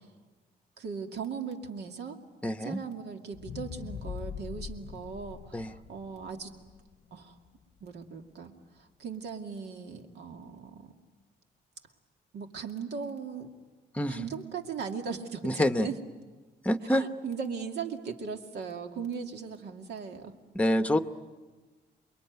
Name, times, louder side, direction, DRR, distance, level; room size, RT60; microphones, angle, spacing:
voice 1, 0.8-2.2 2.6-6.5 7.1-7.4 7.8-10.9 12.3-13.5 14.1-16.0 16.9-20.3, right 6 dB, 75° right, 4 dB, 2.4 m, -38 dB
voice 2, 2.4-2.8 5.5-5.7 13.9-14.3 15.4-15.9 16.6-17.0 20.5-21.0, left 1 dB, 10° left, 9 dB, 0.9 m, -26 dB
sound 1, 3.3-7.6 8.1-8.2, left 7 dB, 45° left, 0.8 m, -42 dB
28.5 x 22.0 x 9.4 m, 1.3 s
cardioid pair, 150°, 17 cm